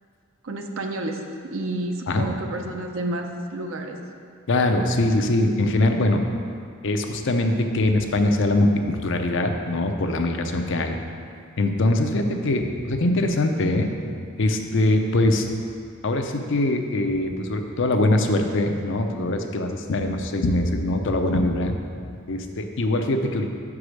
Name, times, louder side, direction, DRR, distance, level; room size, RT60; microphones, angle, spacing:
voice 1, 0.4-4.0, right 1 dB, 70° right, 3 dB, 0.7 m, -30 dB
voice 2, 4.5-6.2 6.8-11.0 11.6-13.9 14.4-15.4 16.0-21.7 22.3-23.5, left 2 dB, 60° left, 5 dB, 0.6 m, -22 dB
6.0 x 4.8 x 6.4 m, 2.3 s
head